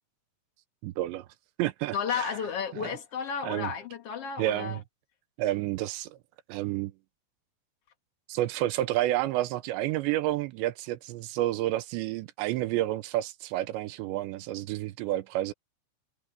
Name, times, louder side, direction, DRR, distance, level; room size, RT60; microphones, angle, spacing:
voice 1, 0.8-1.3 1.6-2.4 2.8-2.9 3.4-3.7 4.4-4.8 5.4-6.2 6.5-6.9 8.3-15.5, right 15 dB, 80° right, 2.7 m, -30 dB
voice 2, 1.9-4.8, left 7 dB, 40° left, 2.5 m, -33 dB
omnidirectional pair, 5.6 m